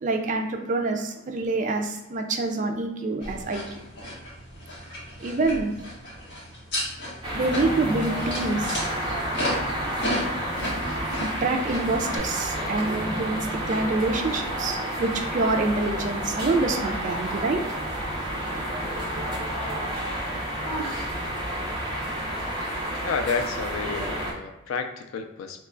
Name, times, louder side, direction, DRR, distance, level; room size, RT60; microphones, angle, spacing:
voice 1, 0.0-3.8 5.2-5.7 7.3-8.8 11.2-13.4 13.7-17.6 18.0-18.1, right 3 dB, 35° right, 4 dB, 0.4 m, -26 dB
sound 1, 3.2-12.2, left 1 dB, 55° left, 1.2 m, -34 dB
sound 2, 7.2-24.3, equal, 20° right, 0.7 m, -30 dB
voice 2, 23.0-25.7, left 5 dB, 80° left, 7 dB, 0.4 m, -30 dB
3.0 x 2.3 x 3.7 m, 0.97 s
head